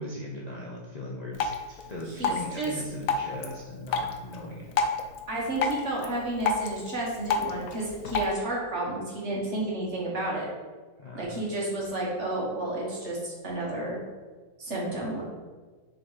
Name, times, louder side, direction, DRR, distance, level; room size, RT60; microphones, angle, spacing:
voice 1, 0.0-4.7 11.0-11.4, left 1 dB, 35° left, -4 dB, 0.7 m, -39 dB
Drip, 1.3-8.3, left 4 dB, 65° left, 1.0 m, -31 dB
voice 2, 2.2-2.7 5.3-10.5 11.1-14.0 14.6-15.2, right 2 dB, 45° right, -4 dB, 1.8 m, -31 dB
6.6 x 4.6 x 4.0 m, 1.4 s
omnidirectional pair, 1.7 m